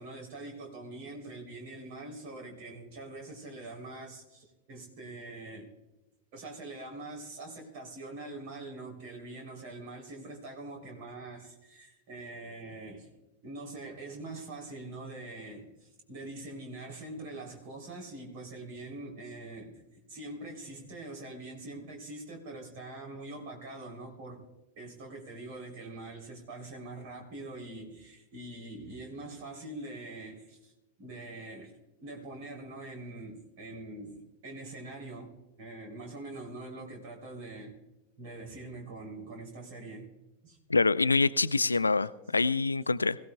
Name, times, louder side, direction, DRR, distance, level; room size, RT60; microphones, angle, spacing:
voice 1, 0.0-5.7 6.3-13.1 13.4-19.8 20.1-24.4 24.8-30.7 31.0-37.8 38.2-40.1 40.4-40.6, right 2 dB, 50° right, 2 dB, 3.3 m, -44 dB
voice 2, 40.7-43.2, left 3 dB, 80° left, 18 dB, 0.4 m, -25 dB
21.5 x 16.0 x 2.3 m, 1.0 s
figure-of-eight pair, 90°, 0 cm